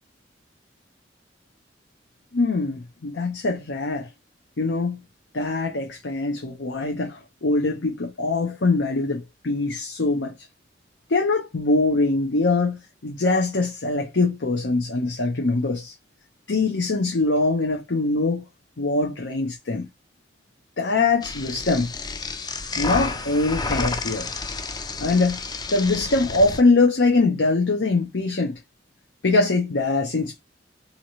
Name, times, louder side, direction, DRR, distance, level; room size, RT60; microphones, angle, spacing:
voice 1, 2.3-4.1 4.6-5.0 5.3-10.3 11.1-15.9 16.5-18.4 18.8-19.9 20.8-21.9 22.8-24.3 25.0-25.4 25.7-28.6 29.2-30.4, left 3 dB, 80° left, 0.8 m, -23 dB
sound 1, 21.2-26.6, left 3 dB, 20° left, 0.4 m, -30 dB
3.8 x 2.9 x 2.9 m
head